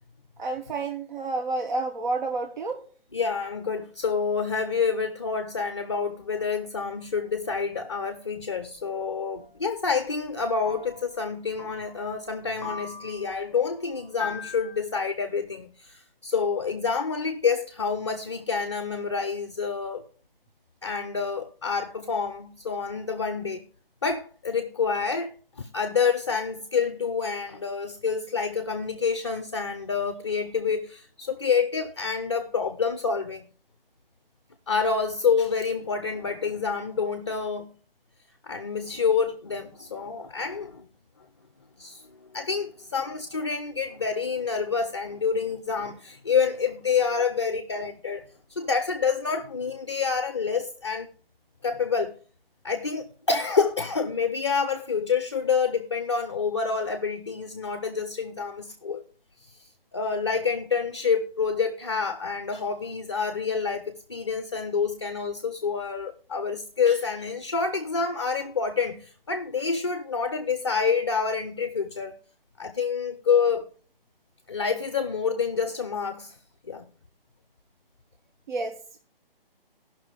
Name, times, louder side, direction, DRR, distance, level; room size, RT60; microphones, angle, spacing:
voice 1, 0.4-2.8 78.5-78.7, right 3 dB, 50° right, 1.1 m, -29 dB
voice 2, 3.1-20.0 20.8-23.6 24.0-25.3 25.6-33.5 34.7-37.8 38.4-40.9 41.8-48.2 48.5-51.1 51.6-52.2 52.6-59.0 59.5-72.2 72.6-73.7 74.5-76.4 76.7-76.9, left 5 dB, 30° left, 0.5 m, -28 dB
sound 1, 9.4-9.5 10.6-11.1 11.6-12.0 12.6-13.2 14.2-14.8, left 4 dB, 5° right, 1.3 m, -38 dB
13.5 x 5.9 x 4.8 m
hypercardioid pair, 165°, 29 cm